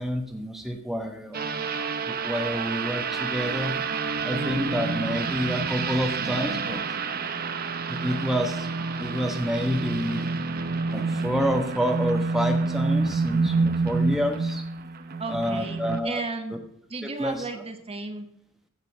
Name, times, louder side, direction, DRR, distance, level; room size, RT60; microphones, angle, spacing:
voice 1, 0.0-1.4 2.0-3.8 4.2-6.8 7.9-8.7 9.0-10.3 10.9-14.6 15.3-16.2 17.0-17.4, equal, ahead, 3 dB, 1.1 m, -28 dB
sound 1, 1.3-16.0, right 4 dB, 45° right, 0.8 m, -28 dB
voice 2, 15.2-16.6 16.9-18.3, right 3 dB, 30° right, 6 dB, 1.2 m, -34 dB
15.5 x 5.3 x 6.3 m, 0.71 s
head